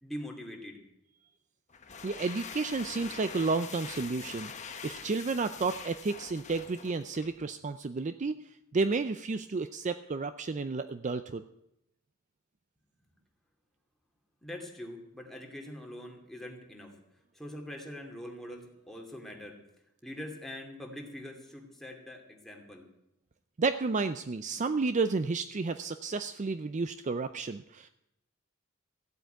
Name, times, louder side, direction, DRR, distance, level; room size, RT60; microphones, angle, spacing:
voice 1, 0.0-0.8 14.4-16.9 17.3-19.6 20.0-22.9, left 1 dB, ahead, 0 dB, 2.6 m, -43 dB
sound 1, 1.7-7.4, left 6 dB, 35° left, 1.2 m, -44 dB
voice 2, 2.0-8.3 8.7-11.4 23.6-27.9, right 4 dB, 35° right, 11 dB, 0.5 m, -31 dB
15.0 x 8.1 x 9.2 m, 0.83 s
head